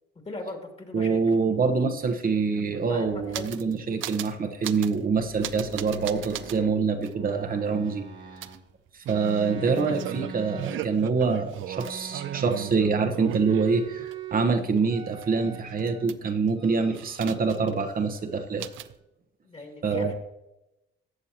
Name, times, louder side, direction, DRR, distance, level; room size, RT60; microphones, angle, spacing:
voice 1, 0.2-1.2 2.8-3.7 19.4-20.1, left 2 dB, 30° left, 3 dB, 2.5 m, -38 dB
voice 2, 0.9-8.0 8.9-18.7 19.8-20.1, right 4 dB, 45° right, 6 dB, 1.1 m, -25 dB
sound 1, 2.0-2.1 2.3-3.7 4.0-4.3 4.6-5.0 5.4-6.6 7.0-7.1 8.4-14.1 14.5-16.5 16.9-17.8 18.1-18.2 18.6-18.9, right 12 dB, 80° right, 0.5 m, -37 dB
sound 2, 5.0-8.6 9.1-11.2 11.7-12.9 13.2-14.5 14.9-16.1 16.6-17.5 17.7-18.9, right 7 dB, 65° right, 1.5 m, -42 dB
14.0 x 8.0 x 3.0 m, 0.91 s
cardioid pair, 90°, 20 cm